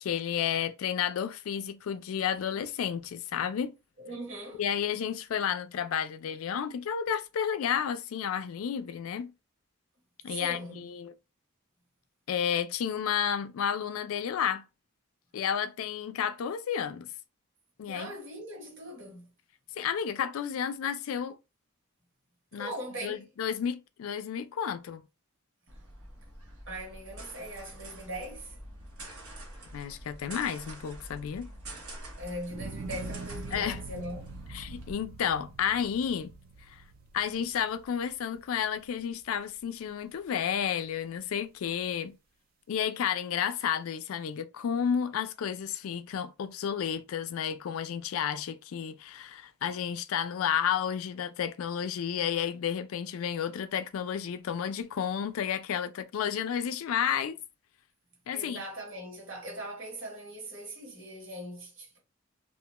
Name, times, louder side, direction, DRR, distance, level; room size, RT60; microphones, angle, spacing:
voice 1, 0.0-3.8 4.6-9.3 10.2-11.1 12.3-14.6 15.3-17.1 17.8-18.1 19.8-21.4 22.5-22.7 23.0-25.0 29.7-31.5 33.5-33.8 34.5-36.3 36.7-36.8 37.1-42.2 42.7-57.4 58.3-58.6, left 8 dB, 75° left, 0.3 m, -31 dB
voice 2, 4.0-4.6 10.3-10.9 17.8-19.3 22.6-23.3 26.7-28.6 32.2-34.4 58.3-62.0, right 1 dB, 60° right, 1.2 m, -40 dB
sound 1, 25.7-34.9, right 1 dB, 85° right, 0.9 m, -46 dB
sound 2, 32.5-38.8 39.3-39.9, right 4 dB, 45° right, 0.3 m, -44 dB
2.4 x 2.2 x 2.9 m
head